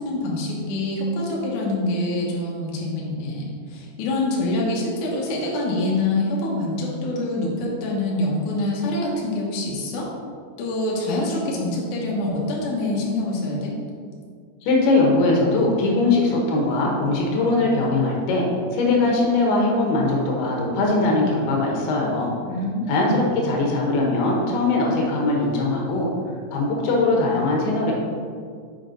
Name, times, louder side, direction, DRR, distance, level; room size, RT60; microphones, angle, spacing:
voice 1, 0.0-10.1 10.6-13.7 22.5-23.3, left 2 dB, 65° left, -4 dB, 2.4 m, -25 dB
voice 2, 14.6-18.5 18.7-22.3 22.9-26.1 26.5-27.9, left 2 dB, 80° left, -2 dB, 3.1 m, -21 dB
8.2 x 5.1 x 3.9 m, 2.1 s
omnidirectional pair, 4.5 m